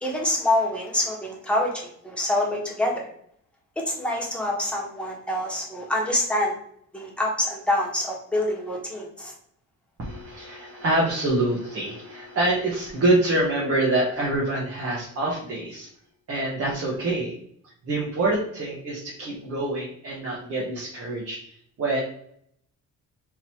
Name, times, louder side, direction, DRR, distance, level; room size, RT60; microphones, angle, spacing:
voice 1, 0.0-1.7 2.0-3.0 3.9-6.6 6.9-9.3, left 1 dB, 5° left, -3 dB, 1.3 m, -26 dB
voice 2, 10.0-15.9 16.3-17.3 17.8-22.0, right 2 dB, 50° right, -5 dB, 1.3 m, -26 dB
3.9 x 2.9 x 4.6 m, 0.66 s
cardioid pair, 125°, 31 cm